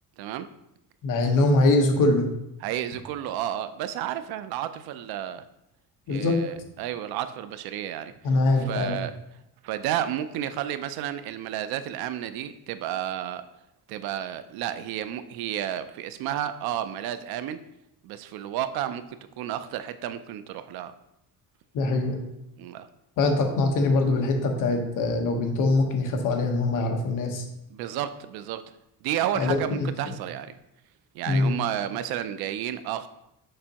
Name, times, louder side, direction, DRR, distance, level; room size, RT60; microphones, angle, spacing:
voice 1, 0.2-0.5 2.6-5.4 6.1-8.1 8.7-9.1 9.6-13.4 13.9-17.6 18.0-19.0 19.4-20.9 22.6-22.9 27.7-28.6 29.0-30.5 31.1-33.1, right 11 dB, 85° right, 11 dB, 0.5 m, -31 dB
voice 2, 1.0-2.3 6.1-6.4 8.2-9.0 21.7-22.2 23.2-27.5 29.3-30.1 31.3-31.5, left 2 dB, 60° left, 3 dB, 1.1 m, -23 dB
6.7 x 5.0 x 2.9 m, 0.83 s
cardioid pair, 155°, 36 cm